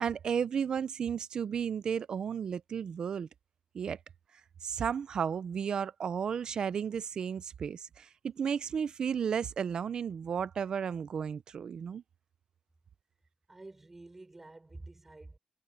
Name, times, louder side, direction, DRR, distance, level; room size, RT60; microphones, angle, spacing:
voice 1, 0.0-3.3 3.7-4.0 4.6-12.0, right 7 dB, 40° right, 0.5 m, -33 dB
voice 2, 13.5-15.4, right 2 dB, 15° right, 6.1 m, -49 dB
wide cardioid pair, 175°, 2 cm